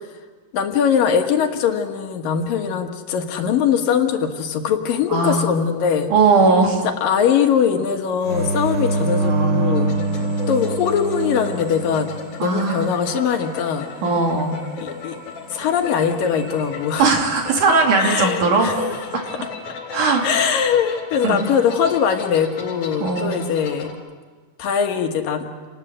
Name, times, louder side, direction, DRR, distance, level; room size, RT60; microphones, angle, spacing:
voice 1, 0.5-6.1 6.8-9.9 10.5-12.1 12.4-13.9 14.8-15.2 15.5-17.1 18.0-18.8 19.3-19.5 20.2-23.9 24.6-25.5, left 7 dB, 80° left, 4 dB, 3.3 m, -21 dB
voice 2, 5.1-5.5 6.1-6.9 9.2-10.2 12.4-12.9 14.0-14.6 17.0-18.7 19.9-20.3 21.2-21.4 23.0-23.4, right 4 dB, 65° right, 2 dB, 4.0 m, -19 dB
sound 1, 8.2-12.8 16.1-16.7, right 2 dB, 40° right, 1.5 m, -24 dB
sound 2, 9.7-23.9, left 5 dB, 60° left, 4.7 m, -35 dB
29.0 x 20.0 x 7.7 m, 1.4 s
omnidirectional pair, 3.9 m